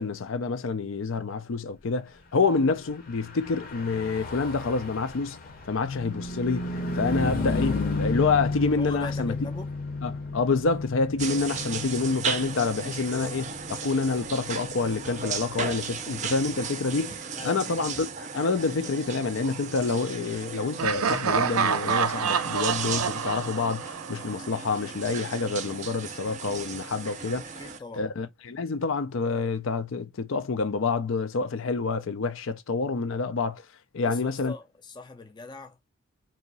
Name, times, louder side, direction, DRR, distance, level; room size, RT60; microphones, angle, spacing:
voice 1, 0.0-5.4 5.7-9.3 10.0-27.4 28.0-33.6 33.9-34.5, left 4 dB, 70° left, 0.5 m, -28 dB
Car passing by / Truck, 3.1-16.8, left 3 dB, 45° left, 0.8 m, -33 dB
voice 2, 8.8-9.7 13.0-13.4 17.3-17.8 27.6-28.1 34.0-35.9, left 3 dB, 20° left, 0.5 m, -41 dB
sound 1, 11.2-27.8, right 6 dB, 35° right, 0.4 m, -36 dB
Laughter, 20.8-24.7, right 7 dB, 90° right, 0.5 m, -27 dB
2.8 x 2.6 x 4.0 m
head